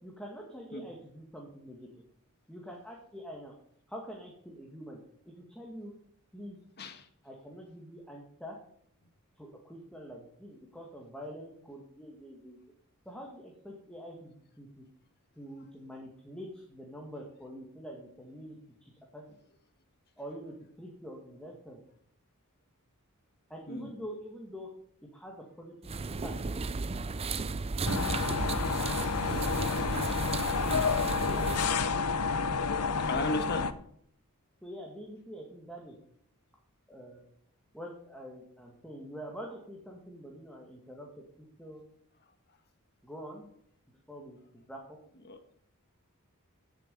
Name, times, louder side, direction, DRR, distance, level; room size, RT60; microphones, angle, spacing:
voice 1, 0.0-1.9 2.5-3.5 3.9-5.0 5.3-5.9 6.3-6.6 7.2-8.6 9.4-12.6 13.1-14.8 15.4-19.4 20.2-21.8 23.5-24.7 25.1-26.4 31.2-31.8 34.6-36.0 36.9-37.2 37.7-41.8 43.0-43.5 44.1-45.0, equal, 5° left, -1 dB, 2.0 m, -45 dB
sound 1, 25.8-31.8, right 4 dB, 25° right, 0.5 m, -34 dB
sound 2, 27.8-33.7, left 5 dB, 85° left, 0.8 m, -30 dB
voice 2, 33.0-33.7 45.2-45.4, left 2 dB, 45° left, 6 dB, 1.7 m, -35 dB
16.5 x 7.2 x 5.3 m, 0.66 s
head